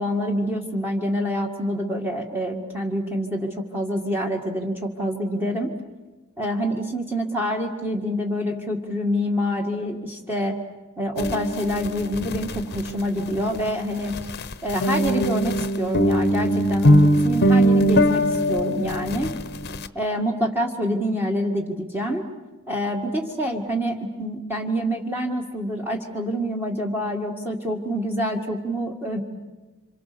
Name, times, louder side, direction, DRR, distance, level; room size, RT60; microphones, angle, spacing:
voice 1, 0.0-5.7 6.4-10.6 11.0-14.1 14.6-19.3 19.9-22.2 22.7-29.2, equal, 10° right, 0 dB, 2.0 m, -26 dB
sound 1, 11.2-13.8 14.1-19.9, equal, 50° left, 1.0 m, -21 dB
28.5 x 26.5 x 6.9 m, 1.1 s
head